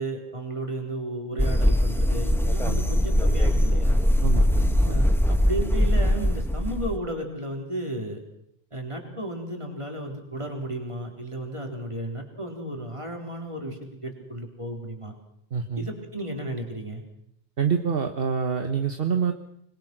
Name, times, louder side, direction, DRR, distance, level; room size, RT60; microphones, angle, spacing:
voice 1, 0.0-4.1 4.9-8.2 8.7-15.1 15.8-17.0, right 1 dB, 25° right, 2 dB, 4.0 m, -33 dB
sound 1, 1.4-7.0, equal, ahead, 1.3 m, -21 dB
voice 2, 2.6-2.9 4.2-5.0 15.5-15.9 17.6-19.3, right 6 dB, 55° right, 6 dB, 1.4 m, -27 dB
25.5 x 21.5 x 6.1 m, 0.71 s
omnidirectional pair, 1.1 m